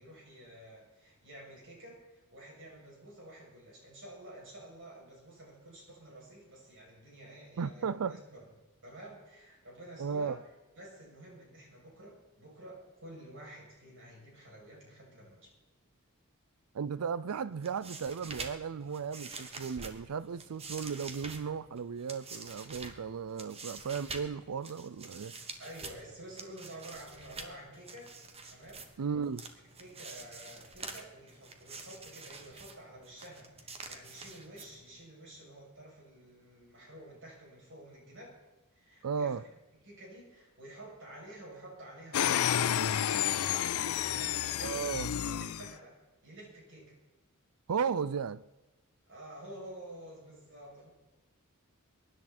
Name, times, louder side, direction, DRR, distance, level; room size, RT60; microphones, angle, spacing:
voice 1, 0.0-8.5 8.8-10.4 10.7-15.5 25.6-28.1 28.5-28.9 29.8-38.4 38.7-39.4 39.8-43.6 43.9-44.9 45.2-47.0 49.1-50.9, right 1 dB, 60° right, 7.1 m, -50 dB
voice 2, 7.6-8.2 10.0-10.4 16.7-25.3 29.0-29.5 39.0-39.4 44.6-45.1 47.7-48.4, right 6 dB, 80° right, 0.5 m, -35 dB
sound 1, 17.5-35.1, right 3 dB, 30° right, 1.4 m, -47 dB
sound 2, 42.1-45.7, left 10 dB, 70° left, 0.5 m, -30 dB
23.5 x 11.0 x 4.3 m
head